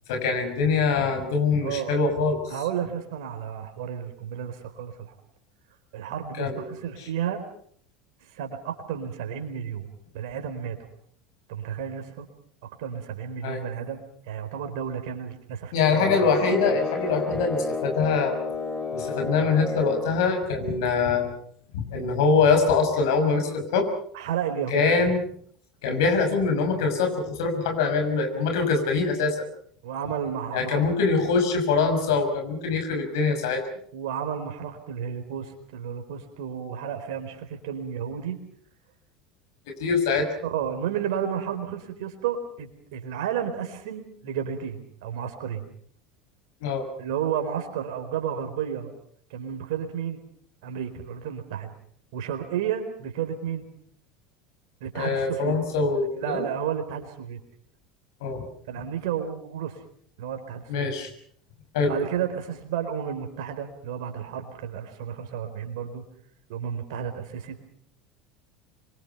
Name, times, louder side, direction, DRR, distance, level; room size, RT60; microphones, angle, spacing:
voice 1, 0.1-2.4 6.4-6.7 13.4-13.6 15.7-18.4 18.9-21.3 21.7-23.9 24.7-25.2 25.8-29.3 30.5-33.6 39.8-40.3 46.6-46.9 54.9-56.4 58.2-58.4 60.7-61.1 61.7-61.9, left 4 dB, 65° left, 5 dB, 6.1 m, -23 dB
voice 2, 1.6-2.0 2.5-5.1 5.9-7.4 8.2-9.9 10.1-10.8 11.5-12.3 12.6-16.2 24.1-24.9 28.3-28.5 29.8-30.9 33.9-38.4 40.4-45.6 47.0-48.9 49.3-50.2 50.6-51.7 52.1-53.6 54.8-55.6 56.2-57.4 58.7-59.8 60.2-60.9 61.8-66.0 66.5-67.6, right 8 dB, 60° right, 6 dB, 4.4 m, -32 dB
sound 1, 15.9-20.2, left 3 dB, 15° left, 2.9 m, -30 dB
26.5 x 24.0 x 5.8 m, 0.62 s
figure-of-eight pair, 75°, 2 cm